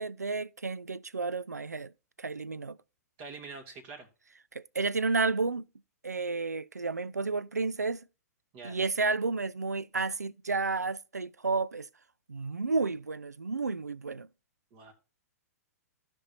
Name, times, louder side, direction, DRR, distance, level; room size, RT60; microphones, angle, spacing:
voice 1, 0.0-1.9 2.2-2.8 4.5-5.6 6.0-8.0 8.6-11.9 12.3-14.3, right 4 dB, 90° right, 0.4 m, -31 dB
voice 2, 3.2-4.1 8.5-8.8 14.7-14.9, right 4 dB, 40° right, 2.4 m, -45 dB
15.5 x 5.3 x 2.8 m
figure-of-eight pair, 110°, 9 cm